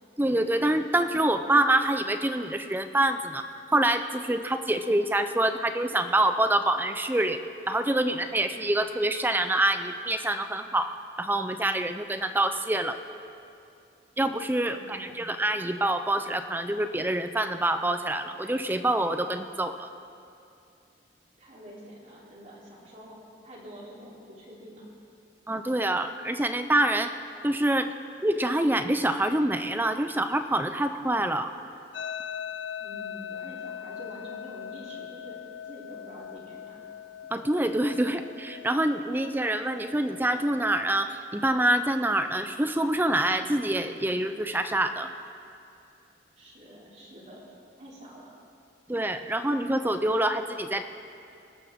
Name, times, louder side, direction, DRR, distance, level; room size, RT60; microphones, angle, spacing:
voice 1, 0.2-3.4 3.7-7.4 7.7-10.9 11.2-13.0 14.2-19.9 25.5-27.1 27.4-27.9 28.2-31.5 37.3-45.1 48.9-50.8, right 1 dB, 10° right, 9 dB, 0.5 m, -26 dB
voice 2, 14.7-15.3 21.4-24.9 32.8-36.9 46.4-47.5 47.8-48.3, equal, 40° right, -5 dB, 3.5 m, -47 dB
sound 1, 31.9-41.0, left 9 dB, 85° left, 0.4 m, -41 dB
24.0 x 13.0 x 3.7 m, 2.6 s
head